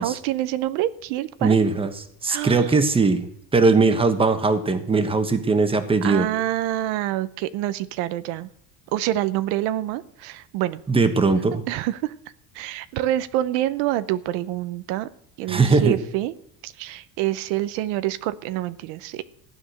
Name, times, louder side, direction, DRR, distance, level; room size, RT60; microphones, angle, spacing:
voice 1, 0.0-1.6 2.3-2.7 6.0-8.5 8.9-10.8 11.7-12.1 12.5-15.1 15.4-16.3 16.6-19.2, right 14 dB, 90° right, 14 dB, 0.9 m, -26 dB
voice 2, 1.4-6.3 10.9-11.6 15.5-16.0, right 4 dB, 10° right, 8 dB, 1.2 m, -20 dB
15.5 x 9.6 x 6.5 m, 0.68 s
cardioid pair, 155°, 45 cm